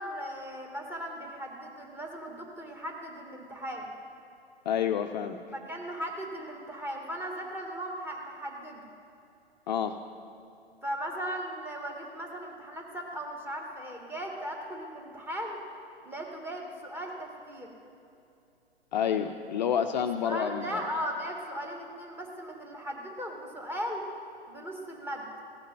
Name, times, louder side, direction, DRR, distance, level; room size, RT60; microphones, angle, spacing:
voice 1, 0.0-3.9 5.5-8.9 10.8-15.6 16.0-17.7 19.9-24.1 24.5-25.3, equal, 5° right, 0 dB, 1.7 m, -37 dB
voice 2, 4.7-5.4 9.7-10.0 18.9-20.8, left 8 dB, 45° left, 7 dB, 0.6 m, -29 dB
16.0 x 6.5 x 9.1 m, 2.6 s
figure-of-eight pair, 115°, 32 cm